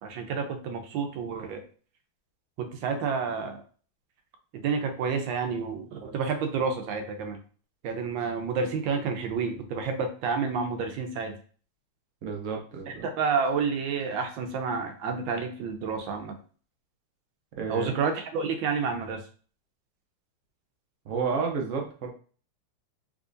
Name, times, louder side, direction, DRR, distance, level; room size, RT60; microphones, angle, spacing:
voice 1, 0.0-1.6 2.6-3.6 4.5-7.4 7.8-11.4 13.0-16.4 17.7-19.2, right 5 dB, 80° right, 5 dB, 1.4 m, -29 dB
voice 2, 12.2-13.1 17.6-17.9 21.1-22.1, right 5 dB, 65° right, 1 dB, 0.8 m, -31 dB
3.6 x 3.1 x 2.5 m, 0.41 s
omnidirectional pair, 2.1 m